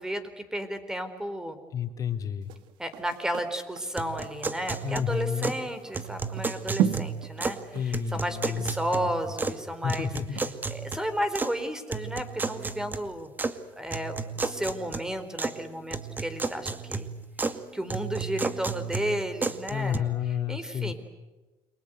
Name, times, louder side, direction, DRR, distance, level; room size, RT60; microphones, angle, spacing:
voice 1, 0.0-1.6 2.8-10.1 10.7-13.3 13.8-17.1 17.7-20.0 20.5-20.9, equal, 5° right, 9 dB, 4.1 m, -33 dB
voice 2, 1.7-2.5 4.8-5.6 7.7-9.1 9.8-10.5 19.7-20.9, left 8 dB, 45° left, 6 dB, 3.4 m, -31 dB
sound 1, 2.4-11.0 11.4-11.5, right 9 dB, 80° right, 2.1 m, -35 dB
sound 2, 4.0-5.6 5.9-7.6 7.9-9.6 9.9-11.5 11.9-13.5 13.9-15.6 15.9-17.6 17.9-20.0, right 4 dB, 20° right, 2.1 m, -33 dB
29.5 x 24.0 x 8.1 m, 1.2 s
cardioid pair, 110°, 8 cm